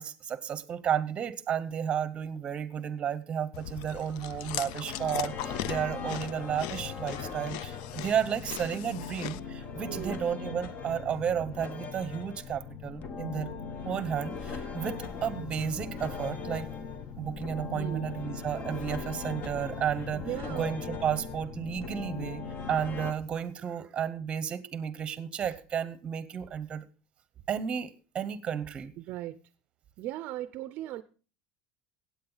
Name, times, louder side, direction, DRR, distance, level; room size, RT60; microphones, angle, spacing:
voice 1, 0.0-13.5 13.8-16.7 17.2-26.8 27.5-28.9, right 8 dB, 25° right, 0.8 m, -32 dB
Chewing mastication, 3.5-9.4, left 13 dB, 75° left, 0.4 m, -39 dB
sound 1, 4.6-23.1, left 5 dB, 40° left, 1.0 m, -39 dB
voice 2, 20.1-20.7 29.0-29.4 30.0-31.0, right 14 dB, 50° right, 0.5 m, -37 dB
16.0 x 8.4 x 3.9 m
cardioid pair, 155°, 4 cm